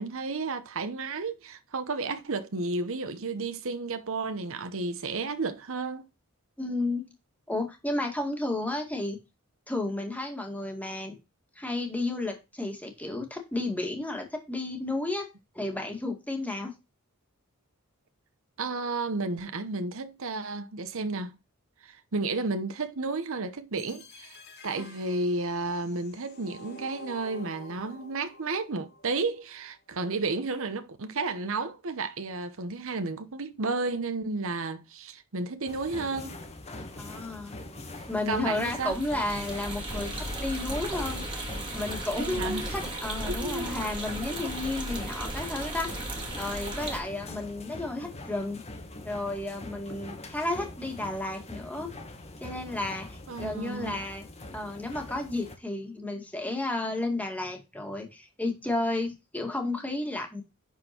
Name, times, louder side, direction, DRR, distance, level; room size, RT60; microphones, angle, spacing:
voice 1, 0.0-6.0 18.6-21.3 21.8-24.4 24.6-36.4 38.3-39.0 42.1-42.7 43.3-43.8 53.3-54.0, right 3 dB, 65° right, 1.0 m, -32 dB
voice 2, 6.6-7.1 7.5-9.2 9.7-11.2 11.6-15.3 15.5-16.7 24.8-24.9 37.0-37.5 38.1-41.2 41.7-46.1 46.4-48.6 49.0-51.9 52.4-54.2 54.5-60.4, left 2 dB, 5° left, 2.1 m, -32 dB
sound 1, 23.8-29.8, left 1 dB, 50° left, 1.6 m, -50 dB
sound 2, 35.7-55.6, left 2 dB, 30° left, 1.4 m, -43 dB
sound 3, 38.6-47.0, right 1 dB, 25° right, 2.4 m, -36 dB
10.5 x 4.5 x 4.4 m
head